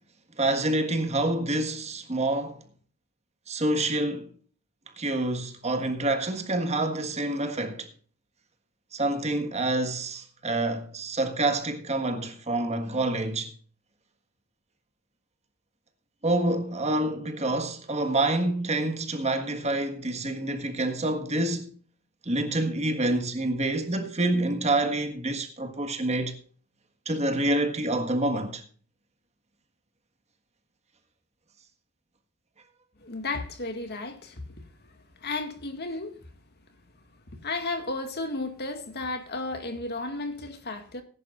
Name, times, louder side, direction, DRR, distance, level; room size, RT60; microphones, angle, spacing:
voice 1, 0.4-2.6 3.5-4.3 5.0-7.9 8.9-13.5 16.2-21.7 22.2-26.4 27.0-28.6, right 2 dB, 30° right, 1.6 m, -27 dB
voice 2, 33.0-34.4 35.2-36.2 37.4-41.0, left 3 dB, 50° left, 2.0 m, -33 dB
19.5 x 10.5 x 2.5 m
head